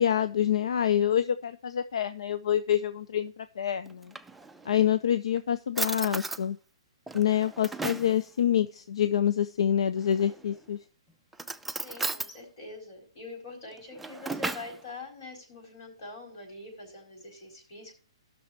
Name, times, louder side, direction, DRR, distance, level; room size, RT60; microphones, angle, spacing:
voice 1, 0.0-4.1 4.7-6.6 7.1-10.8, left 9 dB, 75° left, 0.6 m, -26 dB
Drawer open or close, 3.9-4.8 5.4-5.5 5.8-6.4 7.1-8.2 10.0-10.6 11.3-12.3 13.7-14.8, right 3 dB, 5° right, 0.4 m, -35 dB
voice 2, 11.7-18.0, left 3 dB, 50° left, 4.5 m, -44 dB
16.5 x 6.3 x 2.9 m
hypercardioid pair, 150°, 3 cm